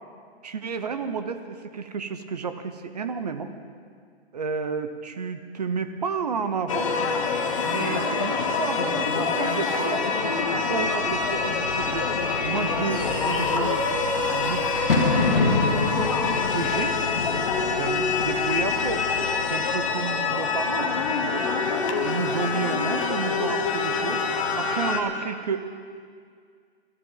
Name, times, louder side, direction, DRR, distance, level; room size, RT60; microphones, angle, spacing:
voice 1, 0.4-3.5 4.3-6.9 7.6-10.1 10.5-12.1 12.4-13.9 14.3-17.0 17.7-19.1 19.4-21.0 21.2-24.2 24.6-25.6, right 5 dB, 40° right, 9 dB, 0.8 m, -31 dB
sound 1, 6.7-25.0, left 4 dB, 30° left, 1.1 m, -25 dB
Bird / Fireworks, 10.9-20.1, left 3 dB, 55° left, 2.7 m, -30 dB
21.5 x 14.5 x 3.9 m, 2.1 s
hypercardioid pair, 170°, 33 cm